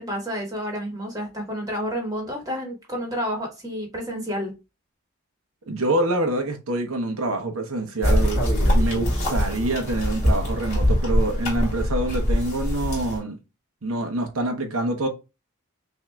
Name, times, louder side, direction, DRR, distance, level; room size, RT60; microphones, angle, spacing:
voice 1, 0.0-4.5, equal, 15° right, 1.5 m, -30 dB
voice 2, 5.7-13.4 13.8-15.1, right 2 dB, 80° right, 0.9 m, -26 dB
sound 1, 8.0-13.2, equal, 30° left, 2.5 m, -22 dB
5.9 x 2.8 x 2.2 m
head